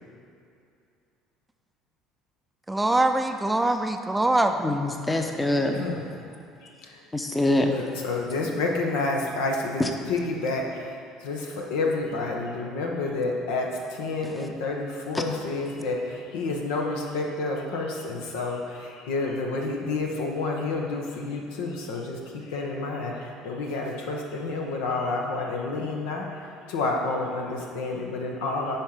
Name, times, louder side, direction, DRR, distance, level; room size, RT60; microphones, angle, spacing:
voice 1, 2.7-4.8, right 2 dB, 10° right, 6 dB, 0.5 m, -23 dB
voice 2, 4.6-5.8 7.1-7.8 9.8-9.9 14.2-14.4 15.1-15.2, left 1 dB, 15° left, 4 dB, 0.9 m, -25 dB
voice 3, 5.7-6.0 6.6-6.9 7.7-9.8 10.1-10.9 11.2-26.3 26.6-28.8, left 3 dB, 80° left, 0 dB, 1.1 m, -29 dB
10.5 x 4.4 x 5.0 m, 2.5 s
hypercardioid pair, 75°, 0 cm